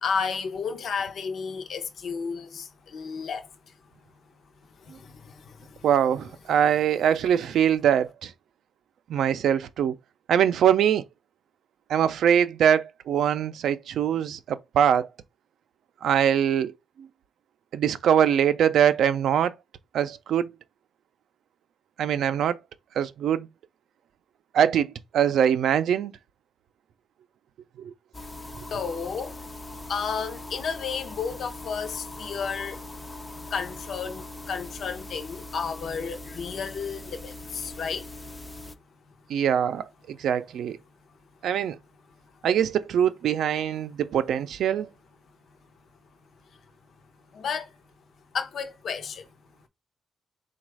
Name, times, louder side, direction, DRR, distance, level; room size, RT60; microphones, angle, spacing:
voice 1, 0.0-3.5 4.8-5.9 28.7-29.4 29.9-32.8 33.5-38.1 47.3-47.7 48.3-49.3, left 6 dB, 55° left, 0.6 m, -32 dB
voice 2, 5.8-8.3 9.1-10.0 10.3-11.0 11.9-15.1 16.0-17.1 17.7-19.5 19.9-20.5 22.0-22.6 23.0-23.5 24.5-24.9 25.1-26.1 27.8-27.9 39.3-40.8 41.4-41.8 42.4-44.9, right 9 dB, 80° right, 0.4 m, -23 dB
sound 1, 28.1-38.8, left 2 dB, 15° left, 0.4 m, -41 dB
4.0 x 2.3 x 4.6 m
wide cardioid pair, 170°, 0 cm